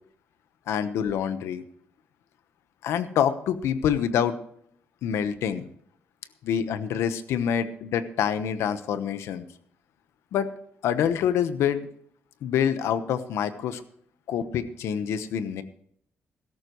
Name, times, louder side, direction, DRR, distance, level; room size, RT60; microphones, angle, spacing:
voice 1, 0.7-1.6 2.8-4.4 5.0-5.7 6.4-9.4 10.3-10.5 10.8-11.9 12.4-13.8 14.3-15.6, left 8 dB, 90° left, 11 dB, 1.1 m, -26 dB
17.0 x 13.5 x 3.1 m, 0.65 s
cardioid pair, 110°, 4 cm